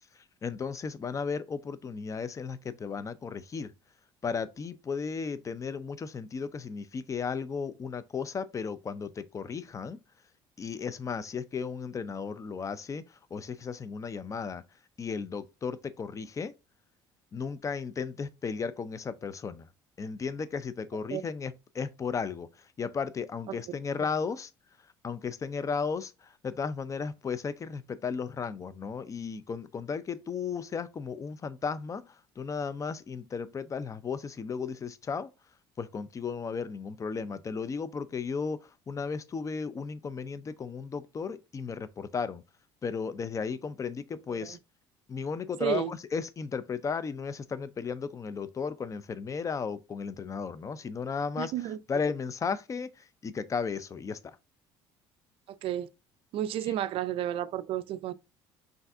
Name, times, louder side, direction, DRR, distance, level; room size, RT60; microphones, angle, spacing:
voice 1, 0.4-3.7 4.2-10.0 10.6-14.6 15.0-16.5 17.3-19.7 20.0-22.5 22.8-24.5 25.0-35.3 35.8-42.4 42.8-44.6 45.1-51.5 51.9-54.4 56.7-56.8, left 5 dB, 30° left, 0.5 m, -35 dB
voice 2, 45.6-45.9 51.4-51.8 55.5-55.9 56.3-58.1, right 12 dB, 60° right, 0.4 m, -32 dB
5.6 x 2.6 x 2.5 m
supercardioid pair, 85°, 11 cm